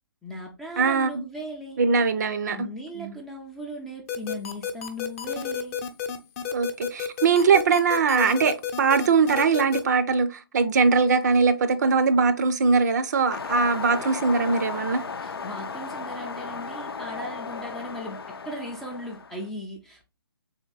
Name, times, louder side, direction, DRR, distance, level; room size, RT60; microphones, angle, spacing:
voice 1, 0.2-1.8 2.5-5.8 15.2-20.0, equal, ahead, 0.4 m, -37 dB
voice 2, 0.8-1.2 1.8-2.6 2.9-3.1 6.5-15.0, right 5 dB, 50° right, 0.5 m, -21 dB
sound 1, 4.1-9.8, left 9 dB, 35° left, 0.7 m, -31 dB
sound 2, 13.3-19.4, left 5 dB, 80° left, 0.6 m, -35 dB
3.6 x 3.3 x 3.8 m
hypercardioid pair, 150°, 12 cm